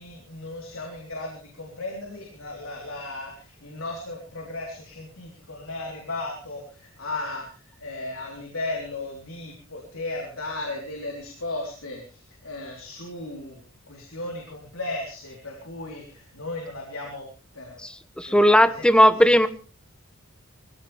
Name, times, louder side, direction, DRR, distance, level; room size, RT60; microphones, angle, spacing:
voice 1, 0.0-17.3 17.5-17.8 18.3-18.9 19.1-19.5, left 2 dB, 75° left, 0 dB, 3.7 m, -36 dB
voice 2, 17.8-19.5, equal, 5° left, 11 dB, 1.0 m, -17 dB
22.0 x 16.0 x 3.4 m, 0.37 s
head